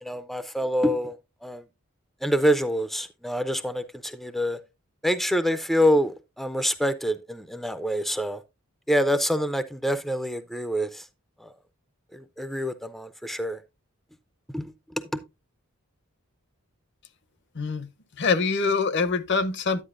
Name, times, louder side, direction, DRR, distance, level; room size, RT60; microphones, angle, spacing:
voice 1, 0.0-1.2 1.4-1.6 2.2-4.6 5.0-8.4 8.9-11.1 11.4-11.5 12.1-13.6 14.5-14.7 15.1-15.2, equal, ahead, 0.4 m, -26 dB
voice 2, 17.5-17.9 18.2-19.8, left 4 dB, 55° left, 0.7 m, -24 dB
9.9 x 9.1 x 2.4 m
head